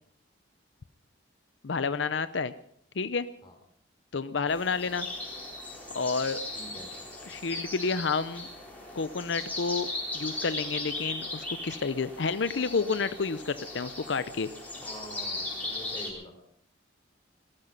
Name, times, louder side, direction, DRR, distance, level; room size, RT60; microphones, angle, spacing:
voice 1, 1.6-2.5 3.0-3.3 4.1-5.1 5.9-6.4 7.3-8.5 8.9-9.9 10.1-14.5, left 4 dB, 70° left, 13 dB, 0.6 m, -30 dB
sound 1, 4.5-16.1, left 2 dB, 10° left, 4.1 m, -38 dB
voice 2, 6.5-6.9 14.8-16.4, left 1 dB, 25° left, 4 dB, 3.8 m, -45 dB
19.0 x 13.5 x 5.5 m, 0.66 s
head